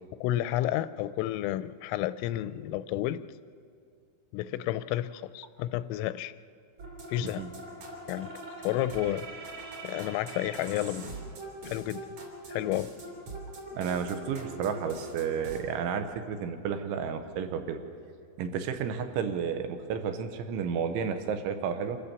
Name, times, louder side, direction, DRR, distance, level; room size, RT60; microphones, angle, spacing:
voice 1, 0.2-3.2 4.3-6.3 7.1-7.4 8.1-8.3 8.6-9.3 9.8-11.1 11.6-12.0 12.5-12.9, left 13 dB, 85° left, 14 dB, 3.2 m, -31 dB
sound 1, 6.8-15.6, right 2 dB, 40° right, 3.6 m, -42 dB
voice 2, 13.7-17.8 18.4-22.0, right 7 dB, 80° right, 7 dB, 3.3 m, -32 dB
26.5 x 14.0 x 7.0 m, 2.4 s
omnidirectional pair, 5.7 m